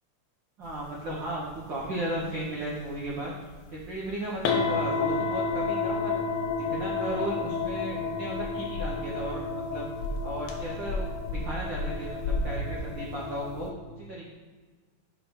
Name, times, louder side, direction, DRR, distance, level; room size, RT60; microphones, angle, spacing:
voice 1, 0.6-3.3 3.7-6.2 6.6-9.9 10.2-13.7 14.0-14.3, right 1 dB, 80° right, -4 dB, 1.0 m, -35 dB
sound 1, 1.8-1.9 2.2-2.3 3.4-3.5 3.8-3.9 4.4-13.7, left 4 dB, 75° left, 1.9 m, -30 dB
5.8 x 5.2 x 5.1 m, 1.4 s
omnidirectional pair, 3.6 m